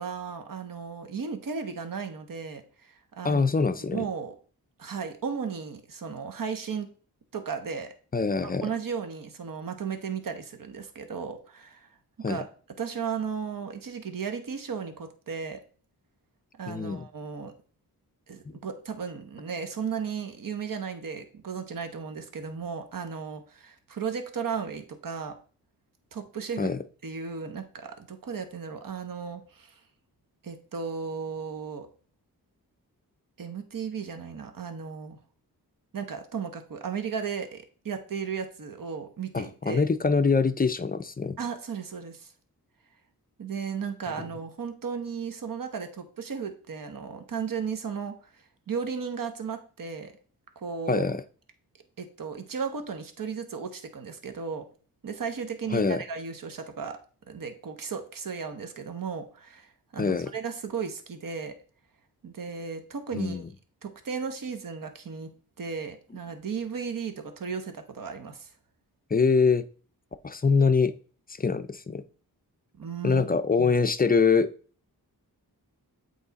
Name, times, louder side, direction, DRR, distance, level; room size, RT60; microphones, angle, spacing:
voice 1, 0.0-3.4 3.8-4.3 4.8-6.9 7.3-7.9 8.4-11.9 12.2-12.5 12.8-15.6 16.6-17.5 18.3-25.3 26.1-26.7 27.0-29.8 30.4-31.9 33.4-35.2 35.9-39.8 41.4-42.3 43.4-50.1 50.6-51.1 52.0-54.6 55.0-57.0 57.3-61.5 62.2-63.4 63.8-65.3 65.6-68.5 72.8-73.2 73.6-73.7, right 6 dB, 60° right, 1.0 m, -35 dB
voice 2, 3.2-4.0 8.1-8.7 12.2-12.4 16.7-17.1 26.6-26.8 39.3-41.4 50.9-51.2 55.7-56.0 60.0-60.3 63.1-63.5 69.1-69.7 70.2-70.9 71.4-72.0 73.0-74.5, left 4 dB, 25° left, 0.4 m, -24 dB
8.0 x 3.2 x 4.0 m
cardioid pair, 60°, 37 cm